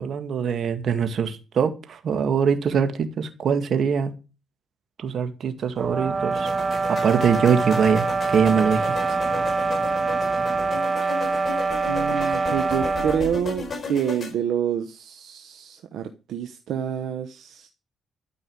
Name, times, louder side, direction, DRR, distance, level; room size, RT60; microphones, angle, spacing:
voice 1, 0.0-4.1 5.0-6.5 6.9-9.2 11.0-11.1 12.2-12.5, right 7 dB, 60° right, 2.0 m, -23 dB
sound 1, 5.8-10.8, right 2 dB, 10° right, 3.2 m, -40 dB
sound 2, 5.8-13.3, right 4 dB, 40° right, 1.2 m, -25 dB
sound 3, 6.3-14.3, left 5 dB, 45° left, 4.5 m, -35 dB
voice 2, 11.9-17.7, right 9 dB, 75° right, 1.0 m, -28 dB
13.0 x 5.4 x 8.7 m
cardioid pair, 90°, 0 cm